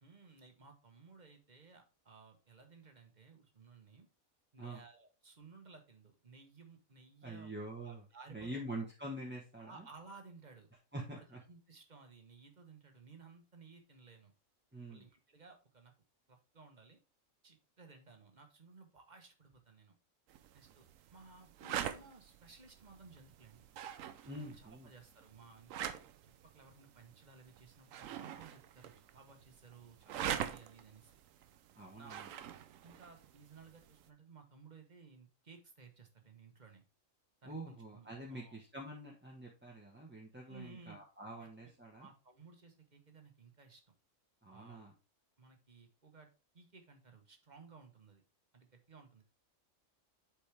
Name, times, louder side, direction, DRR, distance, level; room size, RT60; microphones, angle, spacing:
voice 1, 0.0-4.1 4.5-7.5 7.8-8.7 9.6-10.7 11.2-14.3 14.9-15.9 16.3-17.0 17.4-20.0 20.5-23.7 24.2-25.7 26.2-31.2 31.9-32.4 32.8-36.8 37.4-38.6 40.5-41.0 41.4-41.7 42.0-43.9 44.5-44.8 45.4-46.3 46.5-48.2 48.5-49.2, right 4 dB, 35° right, 5 dB, 1.2 m, -58 dB
voice 2, 7.2-8.0 8.3-9.9 10.9-11.4 14.7-15.0 24.2-24.9 31.7-32.3 37.4-42.1 44.4-44.9, right 1 dB, 10° right, -2 dB, 0.9 m, -46 dB
sound 1, 20.3-34.1, right 9 dB, 80° right, 1.0 m, -45 dB
8.1 x 4.4 x 3.3 m, 0.33 s
omnidirectional pair, 1.4 m